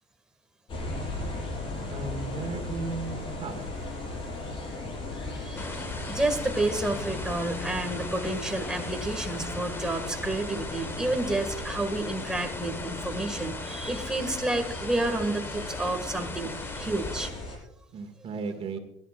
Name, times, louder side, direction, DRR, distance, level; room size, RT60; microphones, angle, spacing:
sound 1, 0.7-17.6, left 2 dB, 45° left, 6.0 m, -37 dB
voice 1, 1.9-3.6 17.9-18.8, right 4 dB, 50° right, 6 dB, 2.0 m, -35 dB
voice 2, 5.2-5.8 6.1-17.6, right 2 dB, 5° right, 3 dB, 2.0 m, -30 dB
sound 2, 5.6-17.3, left 2 dB, 20° left, 1.5 m, -39 dB
22.0 x 11.5 x 2.5 m, 0.81 s
cardioid pair, 105°, 13 cm